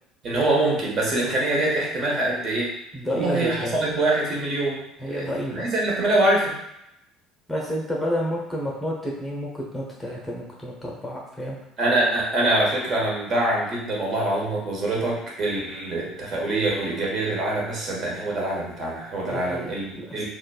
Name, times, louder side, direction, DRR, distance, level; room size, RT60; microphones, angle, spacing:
voice 1, 0.2-2.7 3.1-6.5 11.8-20.3, right 2 dB, 40° right, -3 dB, 1.3 m, -24 dB
voice 2, 2.9-3.8 5.0-5.7 7.5-11.6 19.3-20.2, equal, 5° left, -2 dB, 1.0 m, -30 dB
6.3 x 2.4 x 2.3 m, 0.81 s
figure-of-eight pair, 60°, 0 cm